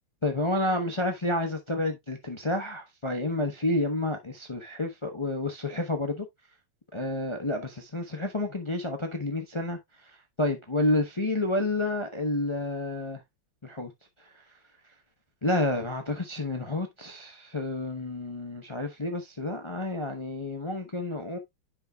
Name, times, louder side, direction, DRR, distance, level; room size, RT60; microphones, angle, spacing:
voice 1, 0.2-6.3 6.9-9.8 10.4-13.2 13.6-13.9 15.4-21.4, left 2 dB, 40° left, 0.4 m, -29 dB
9.9 x 5.4 x 2.3 m
omnidirectional pair, 2.3 m